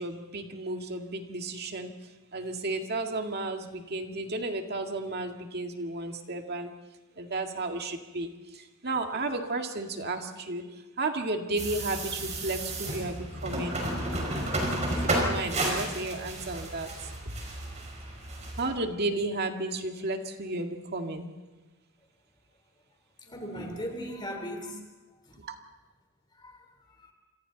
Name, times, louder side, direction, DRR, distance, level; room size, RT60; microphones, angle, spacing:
voice 1, 0.0-1.9 2.3-6.7 7.2-13.8 14.1-14.5 14.8-17.4 18.6-21.3 25.4-25.6, right 2 dB, 50° right, 2.1 m, -33 dB
sound 1, 11.6-18.7, right 1 dB, 35° right, 5.4 m, -32 dB
voice 2, 23.3-24.8 25.3-25.4 26.4-26.6 27.0-27.1, equal, 20° left, 3.7 m, -38 dB
28.0 x 26.0 x 4.1 m
head